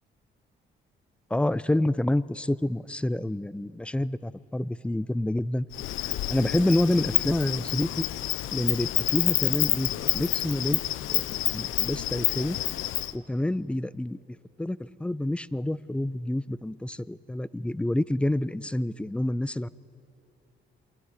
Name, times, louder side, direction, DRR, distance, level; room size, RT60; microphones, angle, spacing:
voice 1, 1.3-5.7 6.3-8.1 8.5-10.8 11.1-12.6 13.1-14.2 14.6-19.7, left 1 dB, 5° left, 19 dB, 0.4 m, -28 dB
Insect, 5.7-13.1, left 14 dB, 85° left, 0.7 m, -28 dB
28.0 x 23.5 x 4.9 m, 2.9 s
cardioid pair, 90°, 20 cm